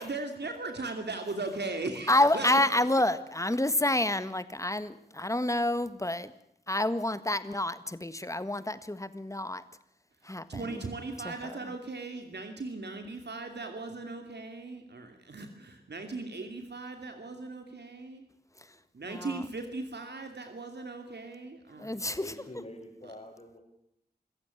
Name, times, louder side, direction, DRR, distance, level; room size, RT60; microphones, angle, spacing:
voice 1, 0.0-2.6 10.5-18.2 18.9-22.0, right 3 dB, 80° right, 6 dB, 2.7 m, -38 dB
voice 2, 2.1-6.3 6.7-9.6 10.3-10.8 11.3-11.6 19.1-19.4 21.8-22.2, left 1 dB, 20° left, 13 dB, 1.6 m, -28 dB
voice 3, 22.2-23.6, left 1 dB, 40° left, -4 dB, 5.4 m, -45 dB
26.0 x 15.0 x 9.9 m, 0.75 s
wide cardioid pair, 65°, 17 cm